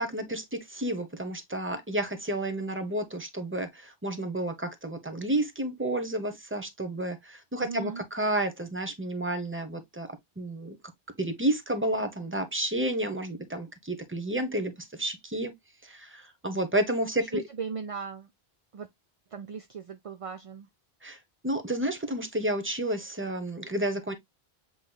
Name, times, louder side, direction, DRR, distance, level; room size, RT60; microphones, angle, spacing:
voice 1, 0.0-10.1 10.4-10.8 11.2-14.7 15.0-15.5 15.8-17.4 21.0-21.2 21.4-24.1, right 1 dB, 15° right, 0.9 m, -31 dB
voice 2, 7.6-8.0 17.3-18.3 18.7-18.9 19.3-20.7, right 6 dB, 50° right, 0.4 m, -38 dB
7.8 x 3.1 x 2.2 m
omnidirectional pair, 1.1 m